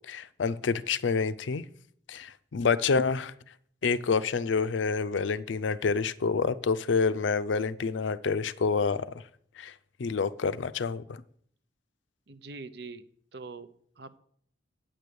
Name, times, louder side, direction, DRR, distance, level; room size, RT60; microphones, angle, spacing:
voice 1, 0.1-1.6 2.1-3.3 3.8-9.2 9.6-9.7 10.0-11.2, left 5 dB, 75° left, 15 dB, 0.5 m, -28 dB
voice 2, 12.3-13.0 13.3-14.2, right 3 dB, 60° right, 12 dB, 0.7 m, -43 dB
9.0 x 6.2 x 6.8 m, 0.63 s
head